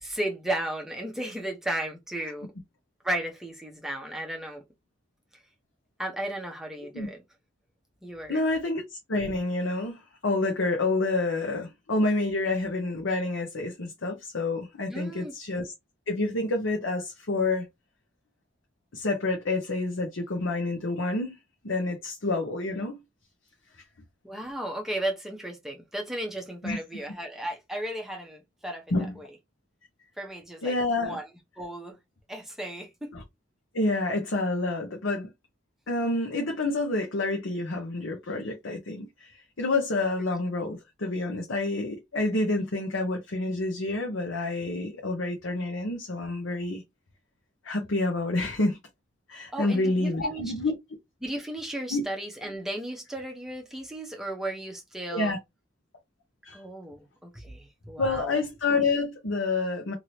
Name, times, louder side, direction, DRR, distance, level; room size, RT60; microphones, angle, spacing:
voice 1, 0.0-2.5 3.0-4.6 6.0-7.2 8.0-8.4 14.9-15.3 24.2-28.8 29.2-29.3 30.2-31.3 31.6-32.0 32.3-33.1 49.5-50.4 51.2-55.4 56.5-58.4, right 1 dB, ahead, 0.8 m, -35 dB
voice 2, 8.3-15.7 16.1-17.6 18.9-21.4 21.6-22.9 26.6-26.8 28.9-29.1 30.6-31.2 33.1-33.2 33.7-35.3 35.9-46.8 47.6-48.8 49.3-50.7 51.9-52.0 55.1-55.4 56.4-56.6 58.0-59.9, left 2 dB, 85° left, 0.8 m, -28 dB
2.8 x 2.8 x 3.0 m
head